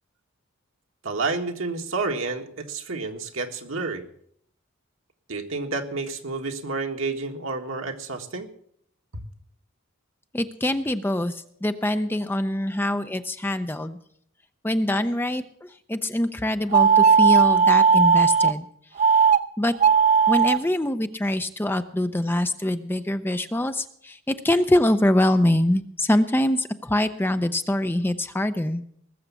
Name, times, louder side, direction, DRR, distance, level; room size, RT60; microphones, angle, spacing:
voice 1, 1.0-4.0 5.3-8.5, right 3 dB, 80° right, 4 dB, 1.6 m, -30 dB
voice 2, 10.3-14.0 14.6-18.7 19.6-19.7 20.3-28.8, left 1 dB, 10° left, 9 dB, 0.5 m, -24 dB
sound 1, 16.7-18.5 19.0-19.4 19.7-20.6, right 6 dB, 35° right, 0.5 m, -16 dB
19.5 x 7.2 x 7.0 m, 0.66 s
head